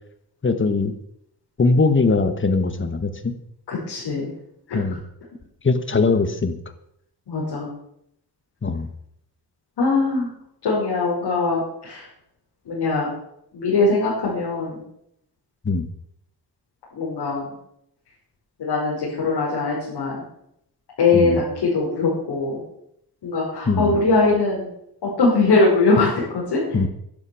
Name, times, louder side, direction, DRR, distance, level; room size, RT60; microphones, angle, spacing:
voice 1, 0.4-0.9 1.6-3.3 4.7-5.0 5.6-6.5 8.6-8.9 15.7-15.9 21.1-21.4 23.7-24.0 26.7-26.9, left 3 dB, 30° left, 10 dB, 1.6 m, -20 dB
voice 2, 3.7-4.3 4.7-4.8 7.3-7.7 9.8-10.3 10.6-12.1 12.7-13.1 13.5-14.8 16.9-17.5 18.6-20.2 21.0-22.6 23.2-24.7 25.0-26.8, left 3 dB, 90° left, -6 dB, 5.8 m, -21 dB
11.5 x 11.0 x 7.2 m, 0.75 s
wide cardioid pair, 110°, 39 cm